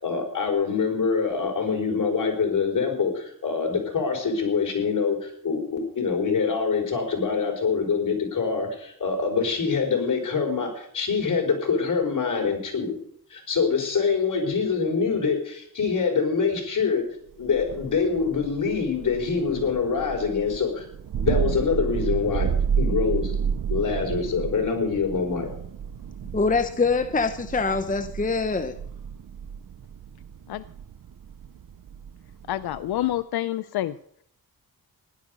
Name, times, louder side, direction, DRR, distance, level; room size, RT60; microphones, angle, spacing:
voice 1, 0.0-13.0 13.3-17.0 17.4-20.9 21.2-22.5 22.8-23.3 23.7-25.5, left 5 dB, 55° left, 5.0 m, -25 dB
Thunder, 17.4-33.2, right 7 dB, 60° right, 0.7 m, -31 dB
voice 2, 26.3-28.8, left 4 dB, 20° left, 0.8 m, -24 dB
voice 3, 32.5-34.0, left 13 dB, 90° left, 0.5 m, -27 dB
16.5 x 11.0 x 5.2 m
cardioid pair, 75°, 37 cm